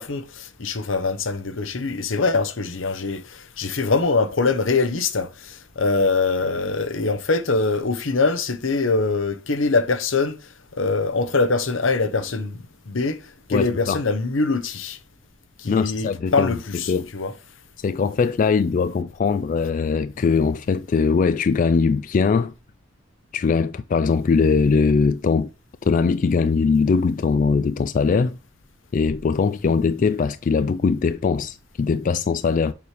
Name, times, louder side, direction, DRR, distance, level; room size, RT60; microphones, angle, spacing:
voice 1, 0.0-15.0 15.6-17.3, left 3 dB, 80° left, 0.9 m, -23 dB
voice 2, 13.5-14.0 15.7-16.5 16.9-17.1 17.8-22.5 23.3-25.5 25.8-28.4 28.9-32.7, left 5 dB, 40° left, 0.3 m, -21 dB
6.9 x 5.0 x 3.2 m
head